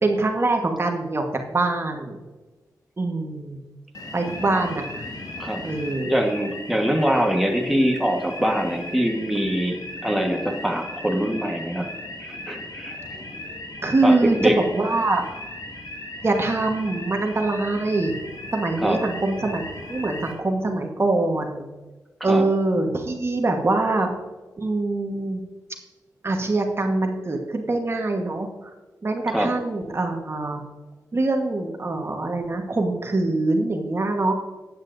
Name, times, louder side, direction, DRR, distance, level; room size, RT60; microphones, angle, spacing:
voice 1, 0.0-1.2 1.5-2.2 3.0-3.6 4.1-5.0 5.6-6.1 13.8-14.4 14.7-15.2 16.2-18.1 18.5-21.7 22.2-24.1 24.6-25.4 26.2-28.5 29.0-30.6 31.1-34.3, right 2 dB, 40° right, 3 dB, 1.3 m, -24 dB
sound 1, 3.9-20.3, left 1 dB, 70° left, 1.8 m, -37 dB
voice 2, 6.1-9.8 10.0-11.9 12.3-12.9 14.0-14.6 18.8-19.0 22.2-22.4 29.3-29.5, equal, ahead, 2 dB, 1.4 m, -23 dB
13.5 x 8.8 x 2.6 m, 1.2 s
cardioid pair, 65°, 7 cm